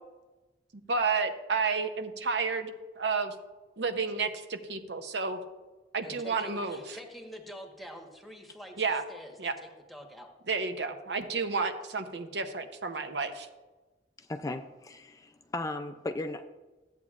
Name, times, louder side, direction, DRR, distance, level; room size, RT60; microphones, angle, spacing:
voice 1, 0.9-2.7 3.0-3.3 3.8-5.4 5.9-7.0 8.8-9.0 9.4-9.5 10.5-13.5, right 4 dB, 70° right, 7 dB, 0.8 m, -31 dB
voice 2, 6.0-8.8 9.1-10.3, equal, ahead, 2 dB, 1.2 m, -46 dB
voice 3, 14.2-16.4, left 2 dB, 20° left, 6 dB, 0.3 m, -36 dB
14.0 x 8.3 x 2.4 m, 1.2 s
head